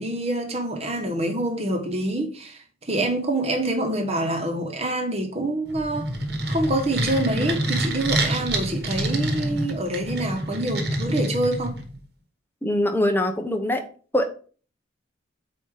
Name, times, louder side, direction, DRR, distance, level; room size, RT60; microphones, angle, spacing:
voice 1, 0.0-6.1 6.5-11.8, right 1 dB, 35° right, 1.3 m, -26 dB
sound 1, 5.7-12.0, right 1 dB, 60° right, 1.4 m, -27 dB
voice 2, 12.6-13.9 14.1-14.3, left 1 dB, 10° left, 0.7 m, -23 dB
8.4 x 2.9 x 4.9 m
head